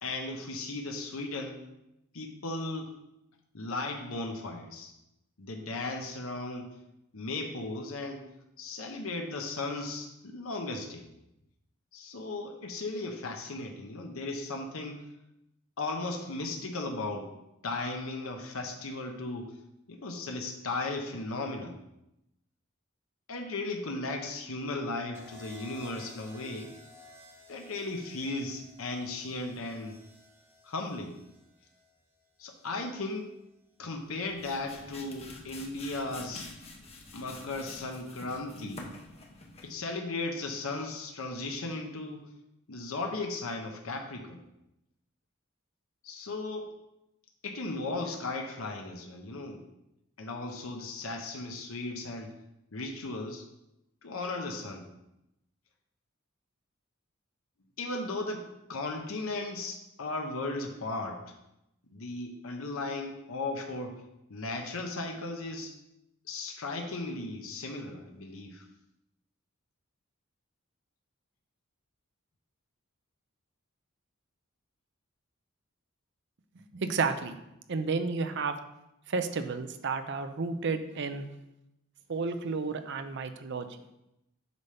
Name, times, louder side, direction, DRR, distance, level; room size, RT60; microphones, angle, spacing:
voice 1, 0.0-1.6 2.1-2.9 3.5-4.9 5.4-6.7 7.1-8.2 8.6-11.0 11.9-15.1 15.8-17.3 17.6-19.6 19.9-21.8 23.3-26.7 27.5-30.0 30.6-31.2 32.4-33.3 33.8-36.5 37.1-38.9 39.6-42.3 42.7-44.4 46.0-46.7 47.4-49.6 50.2-52.4 52.7-53.5 54.0-54.9 57.8-61.3 61.9-64.0 64.3-65.7 66.3-68.7, left 2 dB, 75° left, 3 dB, 0.9 m, -36 dB
sound 1, 25.1-33.3 34.5-34.9, left 1 dB, 10° right, 0.9 m, -55 dB
sound 2, 34.0-39.8, left 2 dB, 30° left, 0.9 m, -47 dB
voice 2, 76.7-77.4 77.7-78.6 79.1-81.3 82.1-83.7, right 4 dB, 55° right, 9 dB, 0.6 m, -31 dB
8.1 x 3.4 x 5.5 m, 0.87 s
head